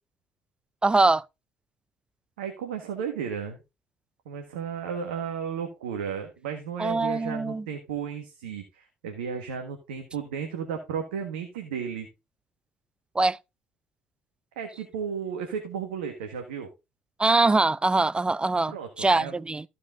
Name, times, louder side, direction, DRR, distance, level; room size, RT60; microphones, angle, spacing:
voice 1, 0.8-1.2 6.8-7.6 13.2-13.4 17.2-19.6, right 3 dB, 15° right, 0.4 m, -23 dB
voice 2, 2.4-3.6 4.2-12.1 14.5-16.7 18.7-19.3, right 7 dB, 85° right, 1.5 m, -34 dB
14.0 x 5.3 x 3.8 m
hypercardioid pair, 60°, 6 cm